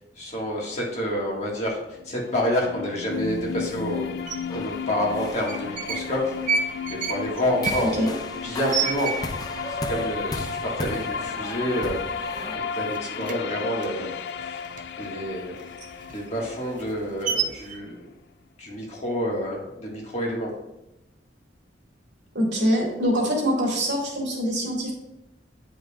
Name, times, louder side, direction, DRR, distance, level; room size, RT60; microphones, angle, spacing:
voice 1, 0.2-4.1 4.5-6.3 6.9-7.9 8.4-9.1 9.7-12.0 12.3-14.1 14.4-14.6 15.0-15.6 16.1-18.1 18.6-20.5, equal, 40° left, -3 dB, 1.7 m, -28 dB
sound 1, 2.0-17.9, left 6 dB, 65° left, 0.3 m, -34 dB
sound 2, 3.1-12.6, left 2 dB, 20° left, 0.6 m, -37 dB
sound 3, 4.3-4.4 5.3-6.1 6.4-9.6 9.9-10.0 10.3-10.8 11.2-11.4 11.7-12.5 12.7-15.1 15.5-17.8, right 5 dB, 45° right, 0.6 m, -30 dB
voice 2, 22.3-24.9, equal, 90° right, -2 dB, 2.2 m, -24 dB
9.3 x 5.2 x 2.4 m, 0.92 s
head